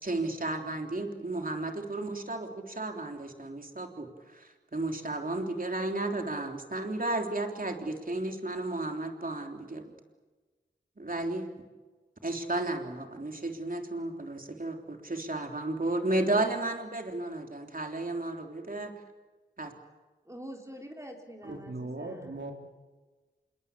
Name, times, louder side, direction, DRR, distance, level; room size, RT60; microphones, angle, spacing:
voice 1, 0.0-9.9 11.0-11.5 12.2-18.9 19.6-19.7 21.4-21.6, right 2 dB, 50° right, 3 dB, 3.4 m, -33 dB
voice 2, 20.3-22.5, equal, 15° right, 1 dB, 3.8 m, -46 dB
voice 3, 21.4-22.5, right 2 dB, 70° right, 2 dB, 4.0 m, -39 dB
27.5 x 21.0 x 8.5 m, 1.3 s
wide cardioid pair, 55°, 19 cm